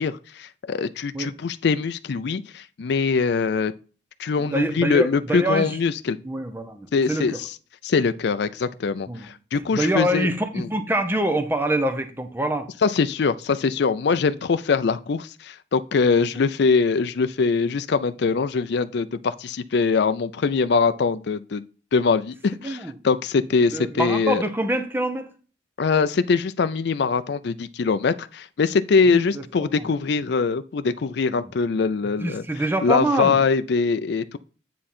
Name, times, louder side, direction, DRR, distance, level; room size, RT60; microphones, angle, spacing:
voice 1, 0.0-3.7 4.2-6.2 6.9-7.5 7.8-10.3 10.5-10.7 12.8-21.6 21.9-24.4 25.8-32.4 32.8-34.4, left 5 dB, 60° left, 0.4 m, -22 dB
voice 2, 4.4-5.8 6.2-7.4 9.1-9.3 9.7-12.7 22.6-22.9 23.7-25.3 29.1-29.8 31.4-31.5 32.2-33.4, right 1 dB, 10° right, 0.8 m, -25 dB
9.3 x 3.7 x 4.3 m
head